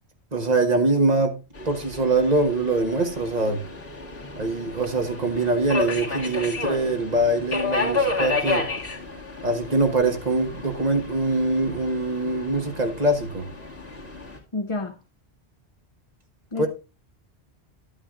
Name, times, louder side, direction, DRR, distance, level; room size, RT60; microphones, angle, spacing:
voice 1, 0.3-1.4 1.6-3.6 4.4-8.6 9.4-13.4 16.6-16.7, right 2 dB, 40° right, 1.4 m, -23 dB
Subway metro underground, 1.5-14.4, left 3 dB, 60° left, 2.3 m, -32 dB
voice 2, 14.5-14.9 16.5-16.7, left 3 dB, 35° left, 0.7 m, -28 dB
12.0 x 8.8 x 2.4 m
omnidirectional pair, 1.1 m